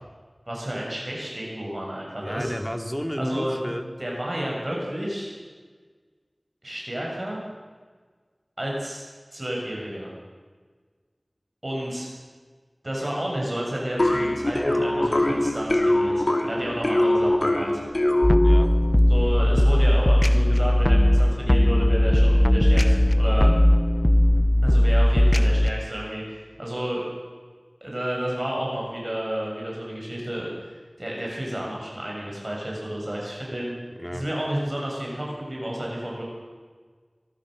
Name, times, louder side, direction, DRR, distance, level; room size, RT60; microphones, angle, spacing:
voice 1, 0.5-2.5 3.2-3.5 4.0-5.3 6.6-7.4 8.6-9.0 9.3-10.1 11.6-12.1 12.8-17.8 19.1-23.5 24.6-27.0 27.8-30.5 31.0-33.7 34.1-36.2, right 1 dB, 45° right, -3 dB, 7.3 m, -31 dB
voice 2, 2.2-3.9 18.4-18.7 34.0-34.2, equal, 10° left, 4 dB, 2.9 m, -31 dB
sound 1, 14.0-18.8, left 1 dB, 60° left, 3.3 m, -22 dB
sound 2, 18.2-25.7, left 1 dB, 30° left, 0.8 m, -18 dB
24.5 x 23.5 x 6.6 m, 1.5 s
wide cardioid pair, 40°, 0 cm